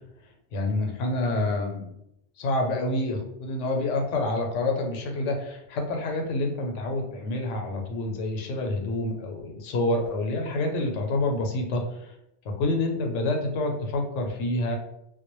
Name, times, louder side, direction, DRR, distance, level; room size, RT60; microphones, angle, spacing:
voice 1, 0.5-1.9 2.4-12.1 12.6-14.8, left 2 dB, 90° left, 3 dB, 0.9 m, -27 dB
2.1 x 2.0 x 2.9 m, 0.80 s
omnidirectional pair, 1.2 m